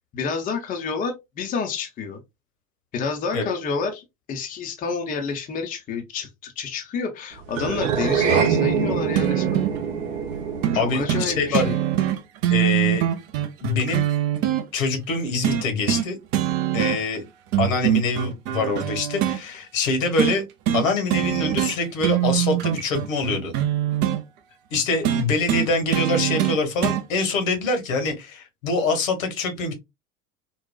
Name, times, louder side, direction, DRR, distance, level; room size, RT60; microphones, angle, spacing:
voice 1, 0.1-2.2 2.9-9.7 10.7-11.8, left 5 dB, 20° left, 0.6 m, -29 dB
sound 1, 7.5-12.1, right 7 dB, 60° right, 0.8 m, -25 dB
sound 2, 9.2-9.8 10.6-10.8 11.1-11.3 11.5-14.6 15.4-16.1 16.3-17.2 17.5-19.4 20.2-20.4 20.7-20.9 21.1-21.8 22.0-24.2 25.0-27.0 28.1-28.2, right 11 dB, 30° right, 0.4 m, -23 dB
voice 2, 10.7-11.7 12.5-13.0 13.6-14.0 14.7-16.2 16.7-17.2 17.6-20.4 20.7-23.5 24.7-29.7, left 3 dB, 60° left, 1.2 m, -24 dB
3.9 x 2.2 x 2.2 m
figure-of-eight pair, 80°, 44 cm